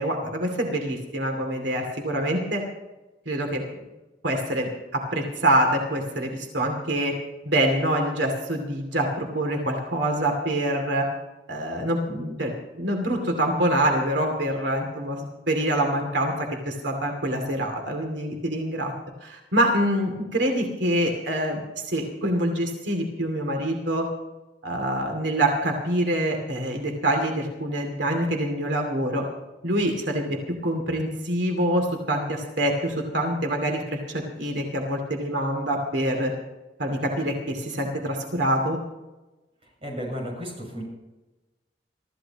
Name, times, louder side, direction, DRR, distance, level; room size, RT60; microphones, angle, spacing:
voice 1, 0.0-2.6 3.3-3.6 4.2-7.1 7.4-11.1 11.5-18.9 19.2-24.1 24.6-29.2 29.6-36.3 36.8-38.8, right 1 dB, 90° right, 3 dB, 2.5 m, -25 dB
voice 2, 39.8-40.8, equal, 35° right, -1 dB, 6.7 m, -33 dB
24.0 x 14.5 x 3.0 m, 1.1 s
head